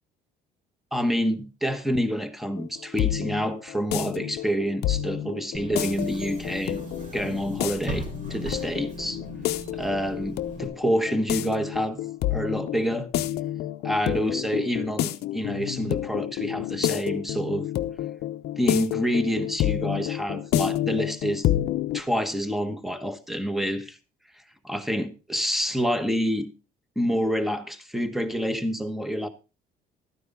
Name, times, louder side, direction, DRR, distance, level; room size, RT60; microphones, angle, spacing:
voice 1, 0.9-6.8 7.1-9.2 9.7-12.0 12.3-13.1 13.8-17.7 18.6-21.5 21.9-24.0 24.6-26.5 27.0-29.3, equal, ahead, 1.2 m, -27 dB
sound 1, 2.6-22.0, left 13 dB, 75° left, 0.7 m, -29 dB
Bus / Engine, 5.5-10.7, right 2 dB, 50° right, 3.8 m, -38 dB
12.5 x 9.4 x 3.7 m
cardioid pair, 110°, 17 cm